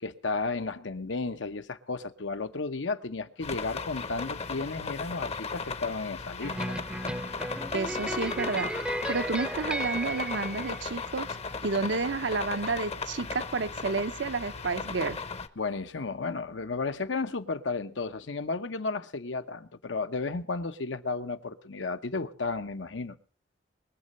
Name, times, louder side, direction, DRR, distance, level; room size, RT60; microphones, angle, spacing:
voice 1, 0.0-6.8 15.6-23.2, left 3 dB, 80° left, 0.9 m, -33 dB
sound 1, 3.4-15.5, left 4 dB, 35° left, 0.8 m, -36 dB
sound 2, 6.4-11.5, right 1 dB, 5° right, 0.6 m, -35 dB
voice 2, 7.7-8.7 9.1-11.4 11.6-15.2, right 4 dB, 70° right, 0.7 m, -30 dB
22.5 x 7.6 x 5.4 m
head